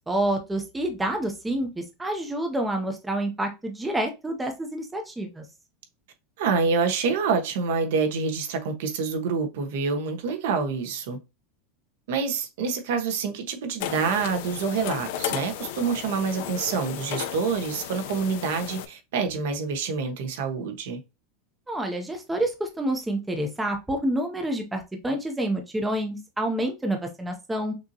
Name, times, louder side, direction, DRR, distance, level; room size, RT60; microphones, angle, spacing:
voice 1, 0.1-5.4 21.7-27.7, right 1 dB, 5° right, 0.6 m, -28 dB
voice 2, 6.4-11.2 12.1-21.0, right 5 dB, 65° right, 1.2 m, -27 dB
sound 1, 13.8-18.9, left 11 dB, 55° left, 0.6 m, -34 dB
5.9 x 2.8 x 2.7 m
supercardioid pair, 175°, 0 cm